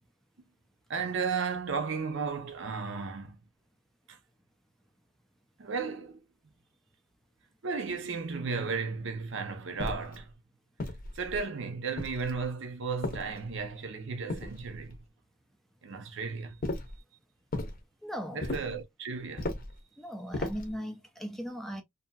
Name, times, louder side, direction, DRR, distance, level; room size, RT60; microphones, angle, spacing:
voice 1, 0.9-3.4 4.1-4.2 5.6-6.2 7.6-10.3 11.1-15.0 15.8-16.6 18.3-19.6, right 5 dB, 60° right, 0.6 m, -34 dB
sound 1, 9.8-10.2 10.8-11.4 12.0-12.5 13.0-13.7 14.3-15.0 16.6-17.0 17.5-17.8 18.4-18.8 19.4-19.8 20.3-20.8, left 2 dB, 45° left, 0.7 m, -36 dB
voice 2, 18.0-18.5 20.0-21.8, equal, ahead, 0.4 m, -38 dB
2.7 x 2.6 x 2.2 m
head